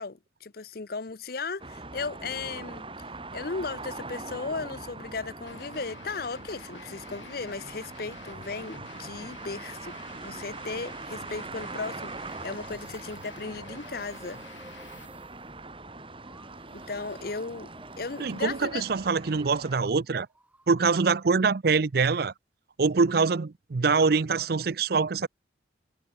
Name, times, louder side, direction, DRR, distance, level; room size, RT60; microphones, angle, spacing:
voice 1, 0.0-2.9 3.3-10.0 10.2-14.4 16.7-17.7 18.0-18.8, left 4 dB, 50° left, 0.7 m, -36 dB
sound 1, 1.6-19.8, right 3 dB, 30° right, 3.9 m, -42 dB
sound 2, 5.5-15.1, left 5 dB, 80° left, 1.4 m, -50 dB
sound 3, 12.3-19.7 20.0-21.5, right 1 dB, 10° right, 4.1 m, -57 dB
voice 2, 18.2-20.3 20.7-22.3 22.8-25.3, right 4 dB, 55° right, 0.5 m, -24 dB
head